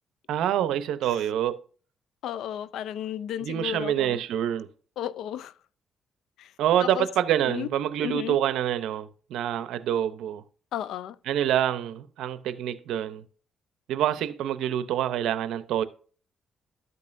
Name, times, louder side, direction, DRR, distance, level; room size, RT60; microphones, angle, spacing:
voice 1, 0.3-1.6 3.4-4.7 6.6-10.4 11.3-13.2 13.9-15.8, right 11 dB, 85° right, 0.7 m, -26 dB
voice 2, 2.2-4.2 5.0-5.5 6.4-6.5 6.8-7.1 7.5-7.7 8.0-8.4 10.7-11.2, left 11 dB, 80° left, 0.4 m, -33 dB
12.5 x 5.4 x 2.6 m
cardioid pair, 90°, 0 cm